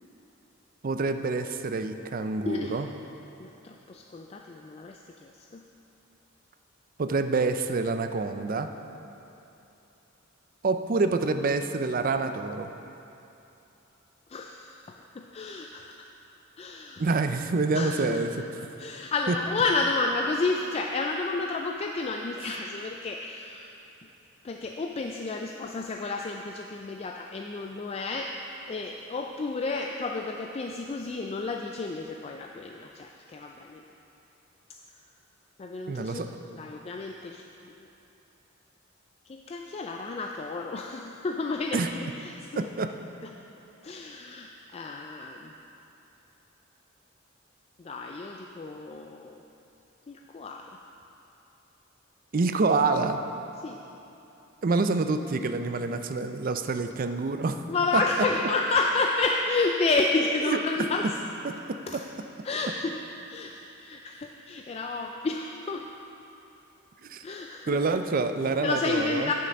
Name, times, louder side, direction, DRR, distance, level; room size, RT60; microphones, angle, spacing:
voice 1, 0.8-2.9 7.0-8.7 10.6-12.7 17.0-18.4 19.3-19.4 35.9-36.3 41.7-41.9 42.6-42.9 52.3-53.2 54.6-57.6 60.5-60.6 61.4-61.5 67.0-67.2 67.7-69.3, right 3 dB, 45° right, 8 dB, 0.4 m, -27 dB
voice 2, 2.4-2.8 3.4-5.6 14.3-16.1 16.6-17.1 17.7-18.2 18.6-23.7 24.4-28.4 28.7-33.8 35.6-36.3 36.5-37.9 39.3-42.7 43.8-45.5 47.8-49.4 50.1-50.8 53.6-53.8 57.7-61.1 61.9-62.0 62.4-65.9 67.2-67.8 68.6-69.3, left 3 dB, 30° left, 2 dB, 0.3 m, -31 dB
10.0 x 6.7 x 5.2 m, 2.9 s
head